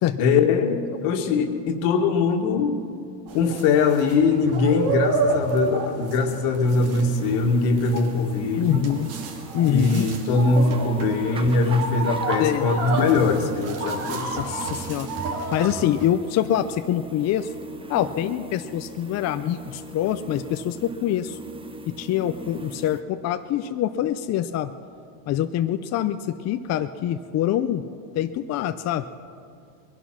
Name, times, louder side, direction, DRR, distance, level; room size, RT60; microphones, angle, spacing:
voice 1, 0.2-2.8 3.3-8.8 9.7-14.4, left 4 dB, 75° left, 5 dB, 2.0 m, -22 dB
sound 1, 3.3-16.1, right 4 dB, 65° right, 2.8 m, -30 dB
sound 2, 6.7-23.0, right 3 dB, 10° right, 0.6 m, -39 dB
voice 2, 8.6-9.1 9.5-10.1 12.4-12.7 14.3-15.1 15.5-17.5 17.9-21.4 21.9-24.7 25.3-27.8 28.1-29.1, left 11 dB, 35° left, 9 dB, 0.5 m, -25 dB
21.0 x 11.0 x 6.0 m, 2.3 s
supercardioid pair, 125°, 48 cm